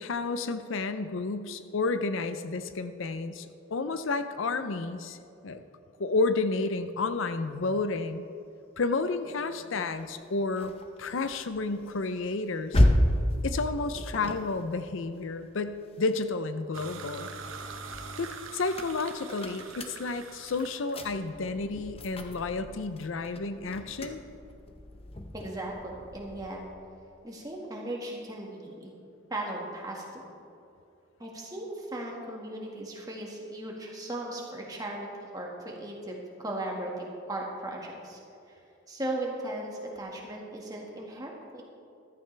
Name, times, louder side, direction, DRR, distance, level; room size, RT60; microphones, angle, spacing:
voice 1, 0.0-5.2 5.4-5.6 6.0-8.2 8.8-10.7 11.0-12.8 13.4-17.3 18.2-24.2, left 3 dB, 70° left, 10 dB, 0.5 m, -31 dB
sound 1, 9.9-16.4 16.8-26.6, left 1 dB, 30° left, 0.8 m, -33 dB
sound 2, 16.7-20.9, right 4 dB, 85° right, 1.0 m, -43 dB
voice 2, 25.3-26.6 27.2-28.9 29.3-30.2 31.2-35.1 35.3-38.2 38.9-41.6, right 1 dB, 20° right, -2 dB, 1.8 m, -37 dB
14.5 x 13.5 x 3.4 m, 2.6 s
head